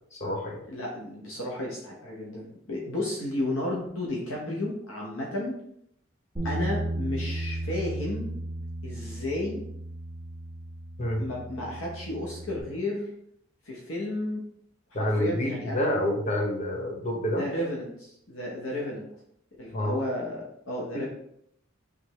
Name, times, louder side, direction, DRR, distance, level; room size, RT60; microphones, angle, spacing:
voice 1, 0.1-0.6 11.0-11.2 14.9-17.5 19.7-19.9 20.9-21.1, left 1 dB, 35° left, 1 dB, 0.8 m, -28 dB
voice 2, 0.7-5.6 6.4-8.3 8.8-9.6 11.2-13.1 13.7-14.4 14.9-15.9 17.4-19.1 19.6-21.1, left 1 dB, 75° left, -3 dB, 1.0 m, -33 dB
Bass guitar, 6.4-12.6, right 1 dB, 15° right, 1.3 m, -35 dB
5.0 x 3.4 x 3.1 m, 0.70 s
head